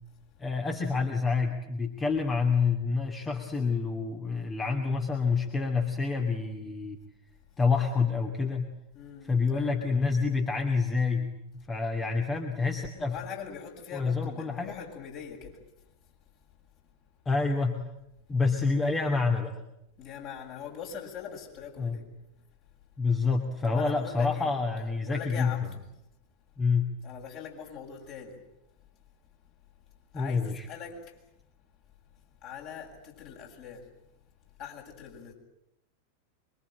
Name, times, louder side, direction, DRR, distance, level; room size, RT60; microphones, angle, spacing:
voice 1, 0.4-7.0 7.6-8.7 9.2-13.2 13.9-14.7 17.3-17.7 18.3-19.5 21.8-22.0 23.0-25.5 26.6-26.9 30.1-30.7, left 4 dB, 15° left, 2.6 m, -28 dB
voice 2, 8.9-10.0 13.1-15.6 20.0-22.0 23.6-24.5 25.1-25.8 27.0-28.4 30.1-31.2 32.4-33.9 34.6-35.3, left 7 dB, 40° left, 7.6 m, -42 dB
25.5 x 24.0 x 9.2 m
figure-of-eight pair, 90°, 0 cm